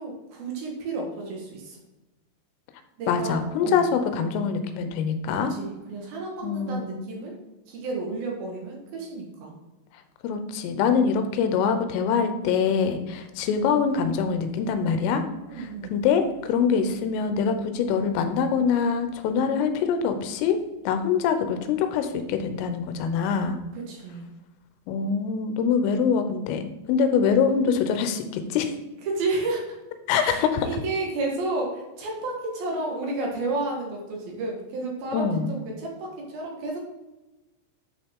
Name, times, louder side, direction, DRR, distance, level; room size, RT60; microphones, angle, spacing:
voice 1, 0.0-1.8 3.0-3.8 5.4-7.3 7.7-9.5 15.5-16.0 23.7-24.2 29.1-29.8 30.2-36.8, right 2 dB, 60° right, -1 dB, 2.9 m, -31 dB
voice 2, 3.1-5.5 6.4-7.0 10.2-15.2 15.6-20.6 20.9-23.6 24.9-28.7 30.1-30.7 35.1-35.5, left 6 dB, 85° left, 8 dB, 3.4 m, -24 dB
9.6 x 5.6 x 3.7 m, 1.1 s
omnidirectional pair, 5.8 m